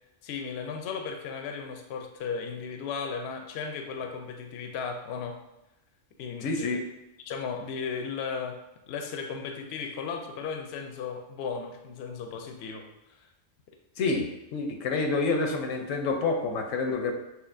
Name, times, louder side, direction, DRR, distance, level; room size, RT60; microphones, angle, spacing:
voice 1, 0.2-5.4 6.2-6.7 7.3-12.9 13.2-13.3, left 5 dB, 65° left, 5 dB, 0.8 m, -35 dB
voice 2, 6.4-6.8 14.0-17.1, left 3 dB, 90° left, 3 dB, 1.1 m, -28 dB
6.5 x 2.7 x 2.6 m, 0.96 s
omnidirectional pair, 1.3 m